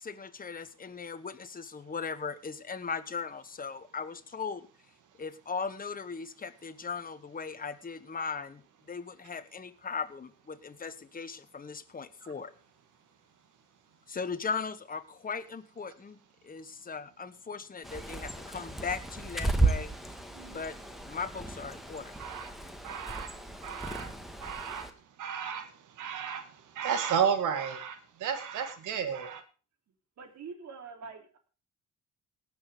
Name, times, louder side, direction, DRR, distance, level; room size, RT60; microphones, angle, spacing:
voice 1, 0.0-4.7 5.2-8.6 8.9-12.5 14.1-16.2 16.4-19.9 20.5-20.8 21.0-22.2, left 5 dB, 30° left, 11 dB, 1.2 m, -38 dB
Bird, 17.8-24.9, right 2 dB, ahead, 1.7 m, -34 dB
voice 2, 22.2-22.5 22.8-23.4 23.6-24.9 25.2-29.4, right 7 dB, 85° right, 10 dB, 2.0 m, -33 dB
voice 3, 30.2-31.4, right 5 dB, 65° right, 4 dB, 3.4 m, -44 dB
18.0 x 6.4 x 5.1 m, 0.36 s
cardioid pair, 90°, 30 cm